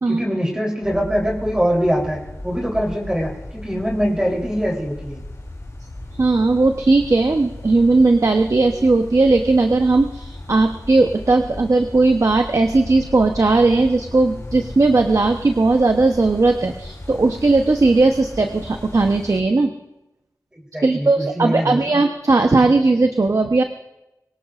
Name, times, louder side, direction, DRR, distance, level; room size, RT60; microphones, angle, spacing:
voice 1, 0.1-5.3 20.7-22.0 22.6-22.7, equal, 10° right, -1 dB, 3.5 m, -23 dB
sound 1, 0.8-19.4, left 1 dB, 55° left, 3.6 m, -36 dB
voice 2, 6.2-19.7 20.8-23.6, right 3 dB, 55° right, 5 dB, 0.9 m, -17 dB
23.0 x 17.5 x 2.5 m, 0.95 s
wide cardioid pair, 50°, 7 cm